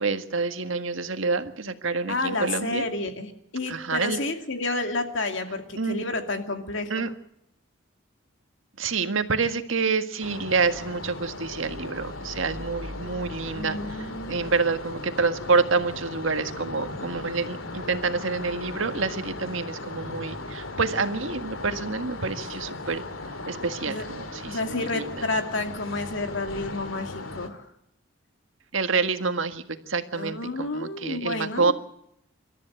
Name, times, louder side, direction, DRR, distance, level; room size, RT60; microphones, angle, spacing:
voice 1, 0.0-2.8 3.7-4.2 5.7-6.0 6.9-7.1 8.8-23.0 23.5-25.2 28.7-31.7, right 4 dB, 75° right, 8 dB, 1.7 m, -27 dB
voice 2, 2.1-7.1 13.5-14.4 23.9-24.1 24.5-27.7 30.1-31.7, left 2 dB, 65° left, 5 dB, 2.4 m, -30 dB
sound 1, 10.2-27.5, left 2 dB, 80° left, 2.4 m, -37 dB
26.5 x 13.5 x 8.0 m, 0.76 s
head